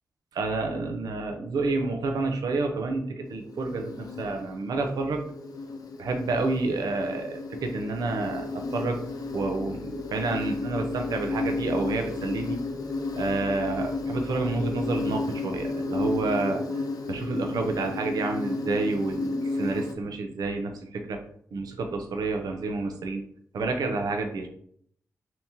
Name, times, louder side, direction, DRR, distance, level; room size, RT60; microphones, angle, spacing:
voice 1, 0.3-5.2 6.0-9.0 9.3-12.6 13.2-16.6 17.1-21.2 21.5-23.2 23.5-24.5, right 3 dB, 90° right, 4 dB, 0.5 m, -29 dB
Insect, 3.3-19.9, left 3 dB, 75° left, 0.5 m, -33 dB
2.8 x 2.7 x 3.6 m, 0.64 s
cardioid pair, 70°, 6 cm